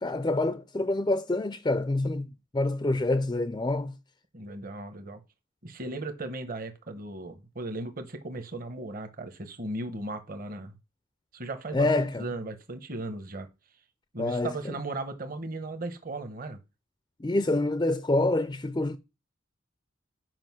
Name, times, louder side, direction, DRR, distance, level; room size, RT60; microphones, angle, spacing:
voice 1, 0.0-3.9 11.7-12.3 14.2-14.8 17.2-19.0, left 2 dB, 20° left, 0.4 m, -27 dB
voice 2, 4.3-5.2 5.6-10.8 11.3-13.5 14.1-16.6, right 2 dB, 45° right, 1.0 m, -37 dB
7.6 x 4.9 x 6.0 m
head